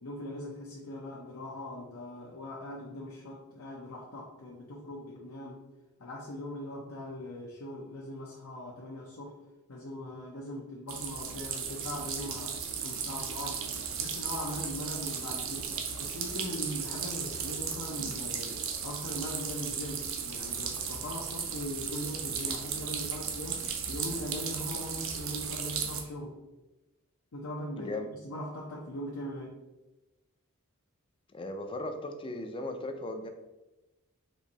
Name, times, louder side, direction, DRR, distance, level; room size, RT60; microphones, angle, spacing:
voice 1, 0.0-5.6 6.0-9.4 9.7-13.7 14.0-15.7 16.0-26.4 27.3-29.6, left 1 dB, 70° left, -3 dB, 0.7 m, -40 dB
sound 1, 10.9-26.0, right 7 dB, 60° right, 0.6 m, -36 dB
voice 2, 27.8-28.1 31.3-33.3, left 1 dB, 25° left, 6 dB, 0.4 m, -37 dB
4.5 x 2.6 x 4.0 m, 1.0 s
head